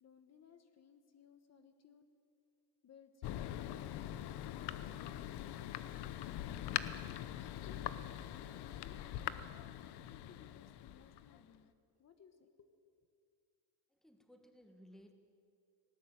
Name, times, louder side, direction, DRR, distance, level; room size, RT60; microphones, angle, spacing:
voice 1, 0.0-2.0 2.8-7.0 7.6-9.6 10.1-11.7 12.0-12.7, left 7 dB, 35° left, 8 dB, 1.3 m, -62 dB
Thunder, 3.2-11.6, left 12 dB, 65° left, 1.0 m, -43 dB
voice 2, 13.9-15.1, equal, ahead, 5 dB, 1.4 m, -60 dB
18.5 x 18.5 x 9.2 m, 2.3 s
cardioid pair, 160°, 43 cm